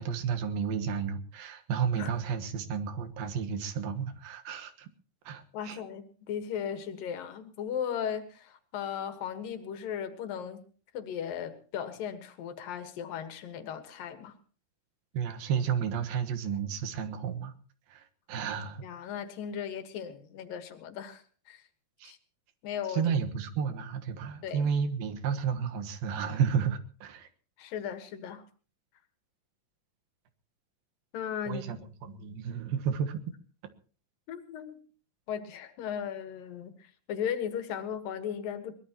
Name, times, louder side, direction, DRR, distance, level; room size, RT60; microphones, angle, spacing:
voice 1, 0.0-4.9 5.2-5.8 15.1-17.5 17.9-18.9 22.0-22.1 22.9-27.3 31.5-33.2, right 7 dB, 85° right, 8 dB, 3.2 m, -32 dB
voice 2, 5.5-10.6 10.9-14.3 18.8-21.6 22.0-22.2 22.6-23.0 24.4-24.7 27.6-28.4 31.1-31.7 34.3-34.8 35.3-38.7, left 8 dB, 75° left, 9 dB, 3.1 m, -37 dB
22.5 x 20.0 x 2.9 m, 0.39 s
omnidirectional pair, 4.0 m